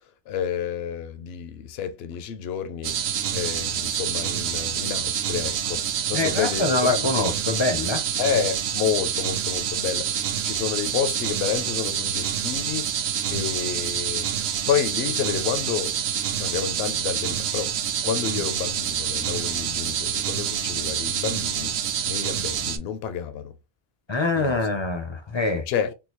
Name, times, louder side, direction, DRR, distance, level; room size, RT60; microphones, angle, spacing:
voice 1, 0.3-3.0 3.3-7.1 8.2-12.9 13.3-14.3 14.7-16.0 16.4-17.7 18.0-21.7 22.0-23.5 24.4-24.6 25.7-25.9, left 8 dB, 75° left, 0.8 m, -29 dB
sound 1, 2.8-22.8, right 8 dB, 75° right, 0.8 m, -27 dB
voice 2, 6.1-8.0 13.3-13.5 18.3-18.4 24.1-25.7, left 2 dB, 35° left, 0.5 m, -25 dB
3.7 x 2.3 x 2.9 m
omnidirectional pair, 1.1 m